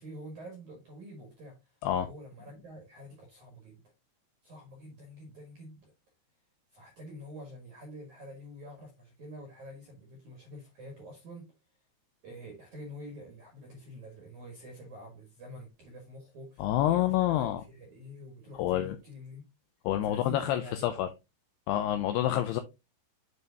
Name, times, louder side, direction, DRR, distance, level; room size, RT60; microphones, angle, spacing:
voice 1, 0.0-1.6 2.0-3.8 4.4-5.9 6.7-11.5 12.2-19.4 20.0-20.9, equal, 55° right, 2.4 m, -47 dB
voice 2, 16.6-17.6 18.5-19.0 19.9-21.1 21.7-22.6, left 12 dB, 85° left, 2.4 m, -28 dB
7.8 x 5.5 x 2.8 m
omnidirectional pair, 5.3 m